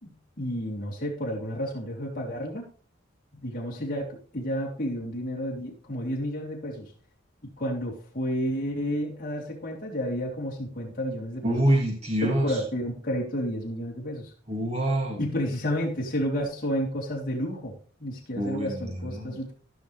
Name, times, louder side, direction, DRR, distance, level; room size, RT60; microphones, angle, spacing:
voice 1, 0.0-2.6 3.3-6.9 7.4-11.7 12.2-14.3 15.2-19.5, equal, 45° left, -3 dB, 3.3 m, -31 dB
voice 2, 11.4-12.4 14.5-15.2 18.4-19.4, right 1 dB, 30° right, 0 dB, 2.6 m, -26 dB
15.5 x 6.1 x 3.4 m, 0.42 s
head